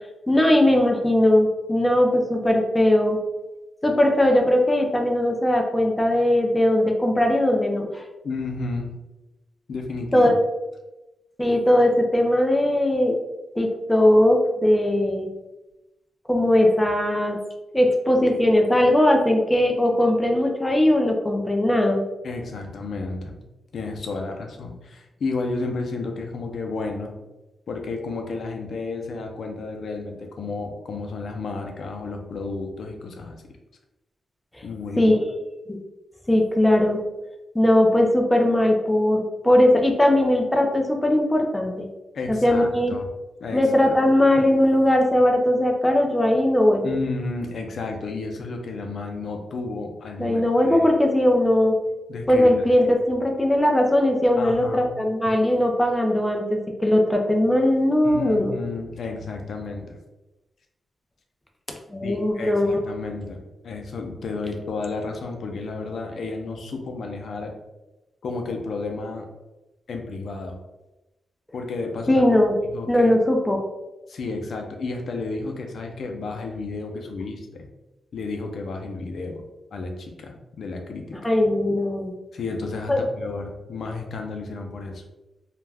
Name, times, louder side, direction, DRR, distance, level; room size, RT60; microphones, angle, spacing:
voice 1, 0.3-3.2 3.8-8.0 10.1-10.3 11.4-13.2 13.6-15.3 16.3-17.4 17.7-22.0 35.0-35.3 35.7-35.8 36.3-37.0 37.5-41.9 42.3-42.9 43.5-46.9 50.2-51.7 52.3-58.5 61.9-62.7 72.1-72.5 72.9-73.6 81.2-82.1 82.9-83.0, left 1 dB, 10° left, 2 dB, 0.4 m, -19 dB
voice 2, 8.2-9.0 9.7-10.4 22.2-23.4 23.7-27.1 27.7-33.4 34.6-35.2 42.1-43.1 43.4-43.6 46.8-50.9 52.1-52.7 54.4-54.9 58.0-60.0 62.0-67.5 68.2-69.3 69.9-70.6 71.5-72.3 72.6-73.1 74.1-77.7 78.1-79.4 79.7-81.3 82.3-85.0, left 3 dB, 65° left, 3 dB, 0.5 m, -32 dB
2.3 x 2.1 x 3.3 m, 1.0 s
wide cardioid pair, 115°, 0 cm